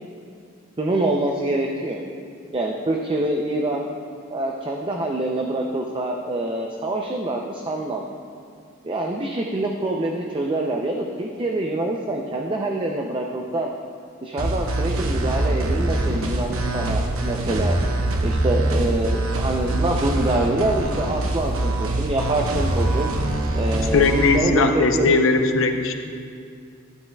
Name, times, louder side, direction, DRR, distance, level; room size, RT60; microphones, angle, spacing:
voice 1, 0.8-2.0 2.5-3.9 4.3-8.0 8.8-13.7 14.2-17.8 18.2-23.1 23.5-25.2, right 2 dB, 25° right, 1 dB, 0.5 m, -25 dB
sound 1, 14.4-24.4, right 1 dB, 80° right, 0.8 m, -24 dB
voice 2, 23.9-25.9, left 4 dB, 65° left, 6 dB, 0.6 m, -19 dB
11.5 x 11.0 x 2.3 m, 2.3 s
head